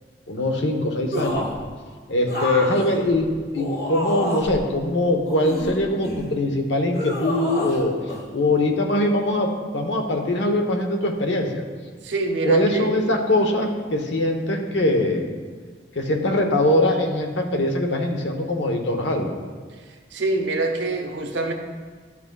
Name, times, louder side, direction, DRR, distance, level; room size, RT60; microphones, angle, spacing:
voice 1, 0.3-1.5 2.1-7.9 8.3-11.6 12.4-15.2 15.9-19.3, left 1 dB, 85° left, 3 dB, 0.9 m, -22 dB
sound 1, 1.1-1.6 2.3-4.6 5.2-6.3 6.9-7.8 8.1-8.2, left 1 dB, 60° left, 1.2 m, -29 dB
voice 2, 12.0-12.9 20.1-21.5, right 2 dB, 85° right, 4 dB, 0.8 m, -25 dB
12.0 x 5.9 x 2.3 m, 1.5 s
head